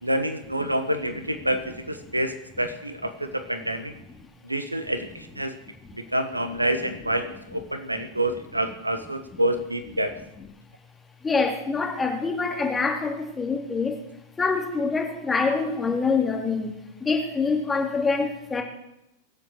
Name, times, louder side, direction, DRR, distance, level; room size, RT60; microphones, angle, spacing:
voice 1, 0.0-3.9 4.4-5.6 5.9-10.2, right 1 dB, 85° right, 9 dB, 1.4 m, -27 dB
voice 2, 11.2-14.0 14.4-16.7 17.0-18.6, left 4 dB, 15° left, 2 dB, 3.1 m, -25 dB
23.0 x 7.8 x 6.6 m, 0.84 s
figure-of-eight pair, 90°, 0 cm